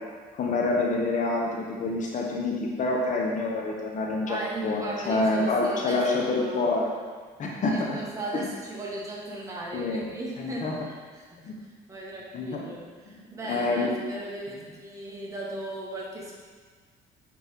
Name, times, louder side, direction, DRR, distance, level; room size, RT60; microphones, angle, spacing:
voice 1, 0.3-6.9 7.4-8.0 8.3-8.5 9.7-10.0 10.4-10.8 11.5-11.6 12.3-12.6 13.4-13.9, left 3 dB, 50° left, -2 dB, 1.2 m, -27 dB
voice 2, 4.2-6.7 7.7-11.5 11.9-16.4, right 2 dB, 20° right, -4 dB, 1.7 m, -37 dB
8.2 x 4.4 x 3.7 m, 1.5 s
cardioid pair, 110°, 17 cm